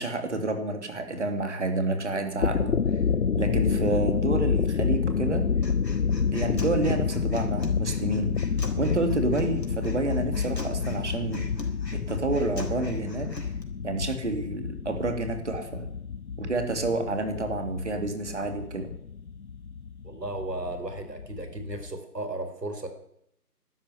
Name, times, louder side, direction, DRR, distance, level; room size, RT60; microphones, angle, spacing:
voice 1, 0.0-2.8 3.4-5.5 6.3-8.4 8.8-11.4 11.9-13.3 13.8-15.9 16.4-18.9, right 2 dB, 45° right, 6 dB, 3.0 m, -29 dB
sound 1, 2.2-21.9, left 6 dB, 60° left, 0.8 m, -29 dB
Human voice, 5.6-13.6, left 1 dB, 90° left, 4.2 m, -43 dB
voice 2, 20.0-22.9, right 2 dB, 80° right, 7 dB, 4.6 m, -35 dB
12.5 x 11.5 x 9.5 m, 0.76 s
figure-of-eight pair, 165°, 48 cm